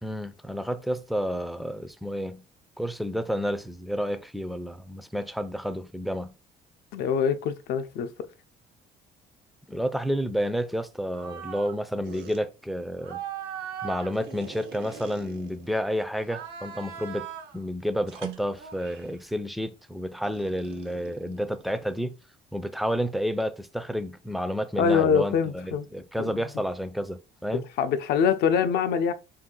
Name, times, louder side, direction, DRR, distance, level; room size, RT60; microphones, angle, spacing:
voice 1, 0.0-2.4 2.8-6.3 9.7-13.2 13.8-17.3 17.5-22.2 22.5-27.6, equal, ahead, 0.3 m, -30 dB
voice 2, 6.9-8.3 24.8-25.9 26.2-26.5 27.8-29.1, left 7 dB, 70° left, 0.5 m, -24 dB
sound 1, 11.1-11.8 12.0-12.4 13.0-15.8 16.2-17.6 18.1-19.2 20.2-22.0, right 8 dB, 80° right, 0.6 m, -40 dB
2.6 x 2.3 x 3.7 m
cardioid pair, 110°, 17 cm